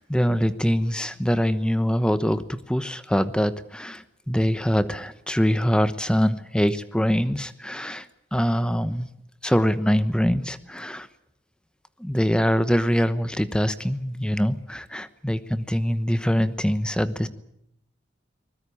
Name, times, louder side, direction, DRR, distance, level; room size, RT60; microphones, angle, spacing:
voice 1, 0.0-9.1 9.4-11.1 12.0-17.3, equal, 5° left, 12 dB, 1.0 m, -24 dB
23.0 x 21.0 x 8.6 m, 0.77 s
head